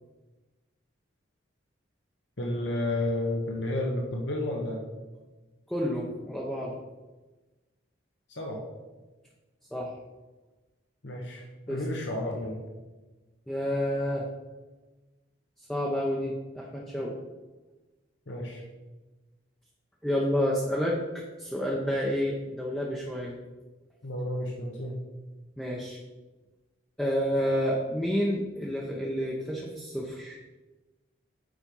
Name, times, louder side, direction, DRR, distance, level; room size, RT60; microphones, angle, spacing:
voice 1, 2.4-4.9 8.3-8.6 11.0-12.6 18.3-18.6 24.0-25.0, left 1 dB, 65° left, -1 dB, 1.2 m, -31 dB
voice 2, 5.7-6.7 9.7-9.9 11.7-11.8 13.5-14.3 15.7-17.2 20.0-23.4 25.6-26.0 27.0-30.4, equal, 5° left, -4 dB, 0.8 m, -29 dB
7.3 x 5.1 x 5.4 m, 1.2 s
head